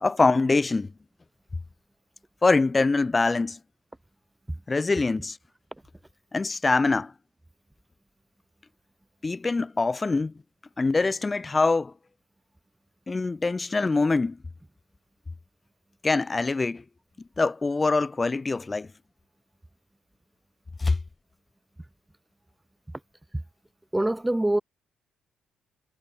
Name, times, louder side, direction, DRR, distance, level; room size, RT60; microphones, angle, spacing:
voice 1, 0.0-0.9 2.4-3.6 4.7-5.4 6.3-7.1 9.2-10.3 10.8-11.9 13.1-14.4 16.0-16.8 17.4-18.9 20.8-21.0, left 3 dB, 25° left, 0.9 m, -24 dB
voice 2, 23.9-24.6, right 1 dB, 10° right, 0.6 m, -24 dB
supercardioid pair, 75°, 0 cm